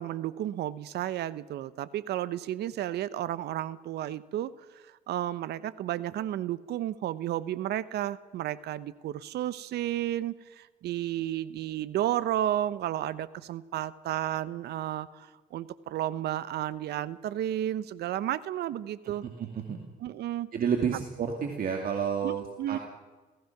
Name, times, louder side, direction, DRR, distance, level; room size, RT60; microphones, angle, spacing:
voice 1, 0.0-4.5 5.1-19.2 20.0-20.5 22.2-22.3 22.6-22.8, right 12 dB, 75° right, 17 dB, 0.9 m, -32 dB
voice 2, 19.0-19.8 20.5-22.8, right 7 dB, 55° right, 3 dB, 2.3 m, -30 dB
29.0 x 16.0 x 6.0 m, 1.3 s
cardioid pair, 85°, 17 cm